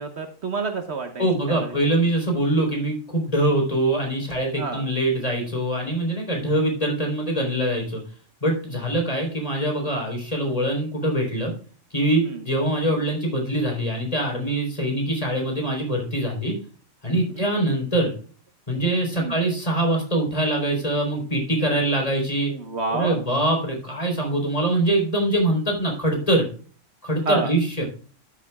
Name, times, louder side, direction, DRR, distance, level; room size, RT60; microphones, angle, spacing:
voice 1, 0.0-1.8 4.6-4.8 12.2-12.4 17.3-17.5 19.1-19.4 22.5-23.2 27.2-27.5, right 4 dB, 55° right, 6 dB, 1.3 m, -29 dB
voice 2, 1.2-8.0 8.4-11.5 11.9-16.6 17.0-18.1 18.7-22.5 22.9-26.4 27.0-27.9, right 1 dB, 30° left, 1 dB, 3.9 m, -23 dB
13.0 x 8.5 x 2.3 m, 0.41 s
omnidirectional pair, 1.3 m